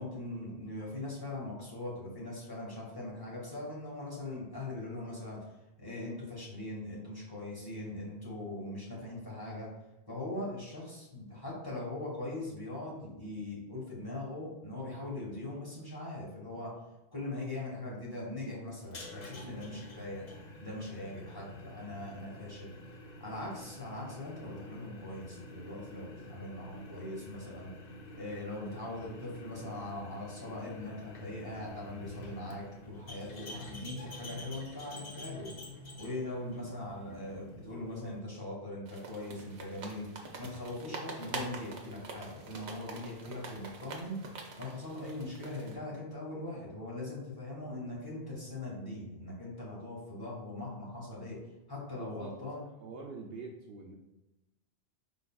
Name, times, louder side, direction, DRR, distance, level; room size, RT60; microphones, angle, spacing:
voice 1, 0.0-5.4 5.8-9.7 10.1-16.7 17.1-20.2 20.6-22.7 23.2-27.7 28.1-35.5 36.0-40.1 40.4-44.2 44.6-51.4 51.7-52.6, left 2 dB, 20° left, -5 dB, 1.2 m, -41 dB
sound 1, 18.8-38.2, left 1 dB, 50° left, 0.7 m, -48 dB
sound 2, 38.9-45.8, right 3 dB, 90° right, 1.0 m, -45 dB
voice 2, 52.0-52.4 52.8-53.9, right 4 dB, 65° right, 1 dB, 0.7 m, -45 dB
4.8 x 3.8 x 2.2 m, 0.97 s
omnidirectional pair, 1.1 m